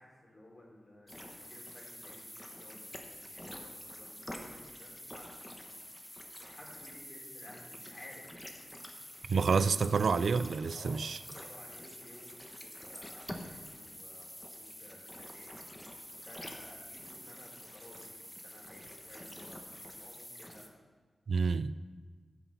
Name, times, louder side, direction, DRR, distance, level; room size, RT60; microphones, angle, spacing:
voice 1, 0.0-5.7 6.0-6.1 6.4-8.4 10.7-11.0 11.3-15.6 16.2-20.7, left 1 dB, 40° left, 3.5 m, -55 dB
sound 1, 1.1-20.7, left 1 dB, 10° left, 1.2 m, -47 dB
voice 2, 9.3-11.2 21.3-21.7, right 5 dB, 70° right, 0.3 m, -28 dB
15.0 x 5.8 x 5.7 m
wide cardioid pair, 95°, 0 cm